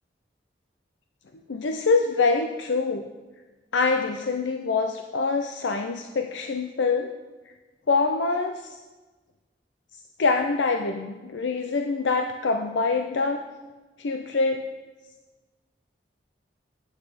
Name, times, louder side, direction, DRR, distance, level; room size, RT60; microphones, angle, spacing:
voice 1, 1.5-3.1 3.7-7.1 7.9-8.8 10.2-13.4 14.0-14.7, left 4 dB, 90° left, 5 dB, 0.6 m, -25 dB
8.8 x 8.1 x 5.1 m, 1.2 s
head